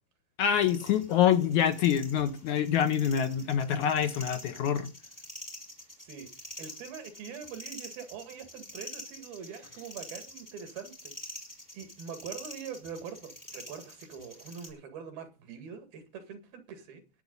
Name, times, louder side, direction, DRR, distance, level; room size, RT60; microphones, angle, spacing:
voice 1, 0.4-4.9, left 9 dB, 70° left, 2.1 m, -26 dB
sound 1, 0.6-14.7, left 1 dB, 5° left, 3.7 m, -47 dB
voice 2, 6.0-11.1 11.7-17.0, right 7 dB, 85° right, 3.9 m, -43 dB
20.5 x 8.7 x 4.0 m
omnidirectional pair, 4.2 m